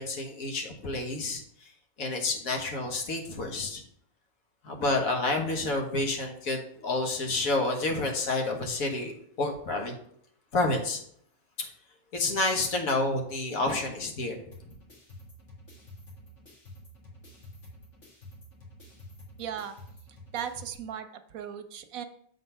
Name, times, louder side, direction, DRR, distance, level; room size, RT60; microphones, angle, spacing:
voice 1, 0.0-1.7 2.0-3.8 4.6-9.9 10.5-11.0 11.6-11.7 12.1-14.4, left 2 dB, 90° left, 2 dB, 1.7 m, -29 dB
sound 1, 14.5-20.8, left 1 dB, 60° left, 2.3 m, -50 dB
voice 2, 19.4-19.7 20.3-22.0, right 8 dB, 85° right, 9 dB, 1.2 m, -37 dB
7.4 x 4.0 x 5.5 m, 0.67 s
omnidirectional pair, 1.4 m